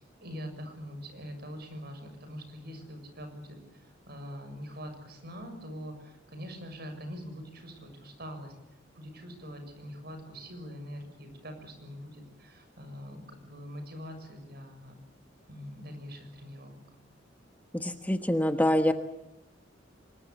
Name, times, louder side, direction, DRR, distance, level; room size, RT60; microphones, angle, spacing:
voice 1, 0.0-8.5 8.9-14.9 15.5-16.8, equal, 60° right, 7 dB, 6.8 m, -43 dB
voice 2, 17.7-18.9, left 1 dB, 10° left, 7 dB, 1.2 m, -25 dB
25.0 x 21.5 x 8.2 m, 0.83 s
head